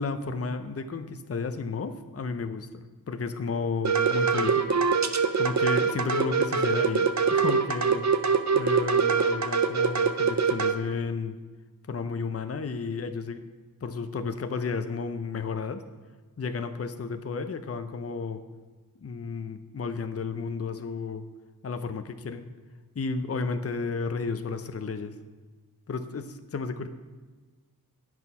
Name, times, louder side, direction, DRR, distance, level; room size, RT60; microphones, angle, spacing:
voice 1, 0.0-2.7 3.1-4.8 5.4-8.0 8.5-11.4 11.9-13.4 13.8-15.8 16.4-18.4 19.0-21.2 21.6-22.5 22.9-25.2 25.9-26.9, left 4 dB, 40° left, 9 dB, 0.6 m, -32 dB
sound 1, 3.8-10.8, right 5 dB, 50° right, 0.7 m, -24 dB
9.3 x 6.2 x 5.6 m, 1.3 s
wide cardioid pair, 50°, 37 cm